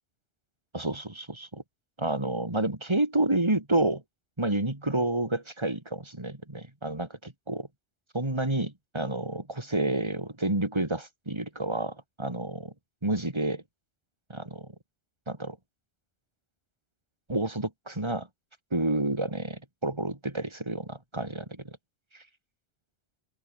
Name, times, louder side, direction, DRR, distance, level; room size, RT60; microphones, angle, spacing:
voice 1, 0.7-1.6 2.0-4.0 4.4-7.7 8.1-12.7 13.0-13.6 14.3-14.7 15.3-15.6 17.3-18.3 18.7-21.8 22.1-22.2, right 2 dB, 25° right, 3.2 m, -29 dB
open air
omnidirectional pair, 1.2 m